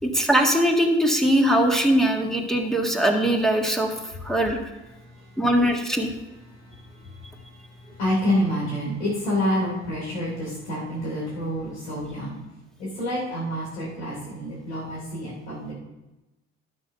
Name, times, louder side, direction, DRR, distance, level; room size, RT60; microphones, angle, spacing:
voice 1, 0.0-4.0 4.2-4.6 5.4-6.1, right 1 dB, ahead, 2 dB, 1.7 m, -21 dB
voice 2, 4.9-5.4 6.5-12.4 12.8-15.7, equal, 85° left, -7 dB, 3.2 m, -28 dB
11.5 x 5.4 x 5.6 m, 1.0 s
hypercardioid pair, 65°, 33 cm